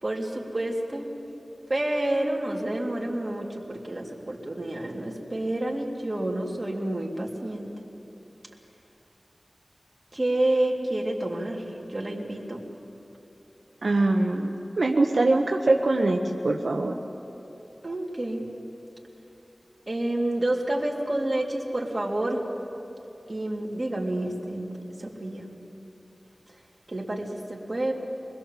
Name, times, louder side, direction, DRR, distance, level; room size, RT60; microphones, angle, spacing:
voice 1, 0.0-1.1 1.7-7.7 10.1-12.7 17.8-18.5 19.9-22.4 23.3-25.5 26.9-27.9, right 1 dB, 40° right, -1 dB, 3.1 m, -29 dB
voice 2, 13.8-16.9, right 2 dB, 80° right, 1 dB, 1.2 m, -23 dB
25.5 x 20.5 x 7.6 m, 2.9 s
wide cardioid pair, 70°, 0 cm